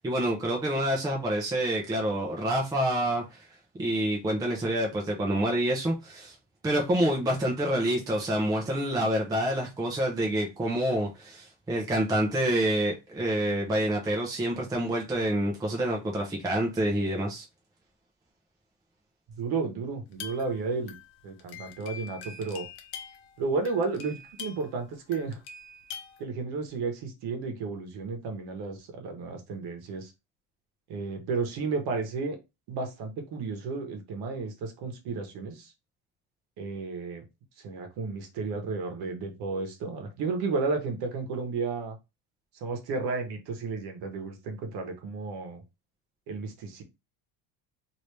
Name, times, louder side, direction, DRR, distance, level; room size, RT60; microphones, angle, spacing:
voice 1, 0.0-3.4 3.7-6.3 6.6-17.4, right 1 dB, 10° right, 0.5 m, -27 dB
voice 2, 19.4-20.9 21.2-22.7 23.4-25.4 26.2-30.1 30.9-32.4 32.7-35.7 36.6-37.2 37.6-42.0 42.6-45.6 46.3-46.8, right 4 dB, 60° right, 1.0 m, -32 dB
sound 1, 20.1-24.8 25.1-26.2, left 6 dB, 65° left, 0.8 m, -44 dB
3.1 x 2.7 x 3.2 m
cardioid pair, 155°, 44 cm